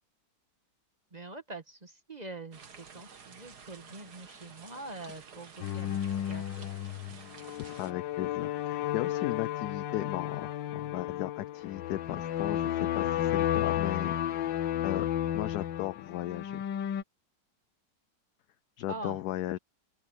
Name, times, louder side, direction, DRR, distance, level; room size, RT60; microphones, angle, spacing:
voice 1, 1.1-6.7 18.9-19.2, right 2 dB, 25° right, 1.5 m, -44 dB
sound 1, 2.5-7.9, right 6 dB, 60° right, 2.2 m, -51 dB
sound 2, 5.6-17.0, left 11 dB, 85° left, 1.6 m, -32 dB
voice 2, 7.6-15.1 15.3-16.6 18.8-19.6, left 14 dB, 70° left, 1.0 m, -36 dB
open air
omnidirectional pair, 2.0 m